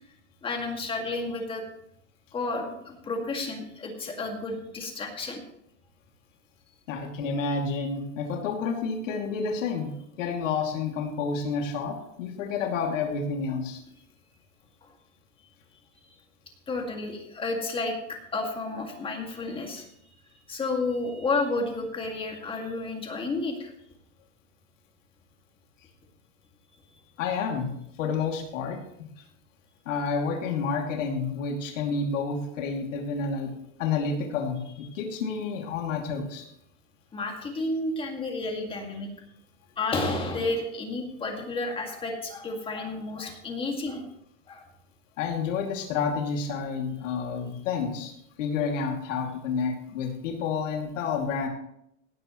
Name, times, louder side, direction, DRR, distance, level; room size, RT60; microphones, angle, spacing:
voice 1, 0.4-1.6 2.3-5.4 14.8-14.9 16.7-19.9 20.5-23.7 37.1-39.1 39.8-44.0 44.5-44.7, left 3 dB, 15° left, 2 dB, 2.1 m, -31 dB
voice 2, 6.9-9.9 10.2-13.8 25.8-25.9 27.2-27.7 28.0-28.8 29.2-29.3 29.9-33.5 33.8-36.5 45.2-51.5, left 5 dB, 80° left, 1 dB, 2.7 m, -29 dB
17.5 x 12.5 x 3.1 m, 0.76 s
supercardioid pair, 160°, 37 cm